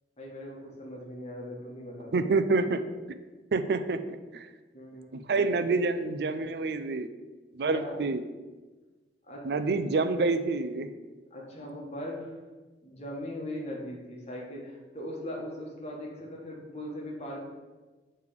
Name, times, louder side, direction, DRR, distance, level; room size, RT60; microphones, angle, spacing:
voice 1, 0.2-2.3 4.7-5.1 7.7-8.0 9.3-9.5 11.3-12.4 12.8-17.4, left 1 dB, 35° left, -2 dB, 1.3 m, -39 dB
voice 2, 2.1-2.8 3.5-4.5 5.1-7.1 7.6-8.2 9.4-10.9, right 3 dB, 60° right, 11 dB, 0.4 m, -27 dB
6.6 x 3.3 x 5.0 m, 1.3 s
head